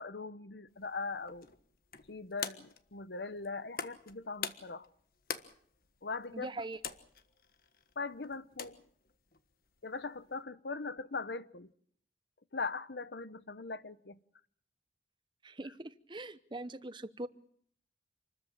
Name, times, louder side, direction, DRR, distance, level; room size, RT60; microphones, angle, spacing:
voice 1, 0.0-1.5 2.1-4.9 6.0-6.5 8.0-8.8 9.8-11.7 12.5-14.2, left 4 dB, 75° left, 1.0 m, -40 dB
sound 1, 0.7-10.4, left 7 dB, 55° left, 1.4 m, -46 dB
voice 2, 6.3-6.8 15.4-17.3, right 2 dB, 25° right, 0.9 m, -42 dB
27.5 x 14.0 x 8.7 m
head